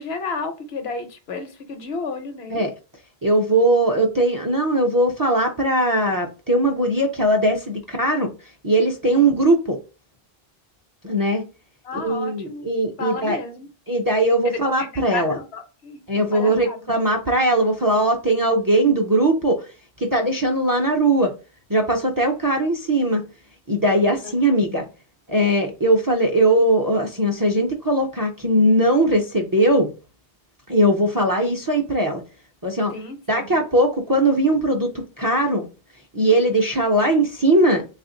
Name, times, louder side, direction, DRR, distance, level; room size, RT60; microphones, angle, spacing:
voice 1, 0.0-2.6 9.0-9.3 11.8-12.7 13.0-13.7 14.4-16.8 24.2-24.3 32.9-33.6, left 4 dB, 80° left, 1.0 m, -32 dB
voice 2, 3.2-8.3 8.6-9.8 11.0-11.4 11.9-13.4 13.9-15.4 16.1-19.7 20.0-21.3 21.7-23.2 23.7-24.8 25.3-29.9 30.7-32.2 32.6-32.9 33.3-34.9 35.2-35.7 36.1-37.9, right 1 dB, 30° right, 0.4 m, -19 dB
3.5 x 2.4 x 3.8 m
omnidirectional pair, 1.0 m